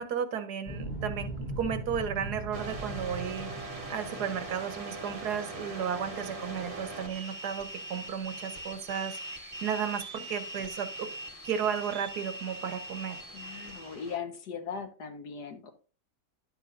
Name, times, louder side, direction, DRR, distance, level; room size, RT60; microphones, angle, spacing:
voice 1, 0.0-11.1 11.4-13.2, right 8 dB, 80° right, 10 dB, 1.6 m, -34 dB
sound 1, 0.7-5.4, right 1 dB, 30° left, 1.8 m, -39 dB
sound 2, 2.5-14.2, right 2 dB, 25° right, 1.1 m, -41 dB
voice 2, 13.3-15.7, left 6 dB, 85° left, 7 dB, 1.9 m, -39 dB
11.0 x 7.7 x 2.6 m, 0.35 s
omnidirectional pair, 1.7 m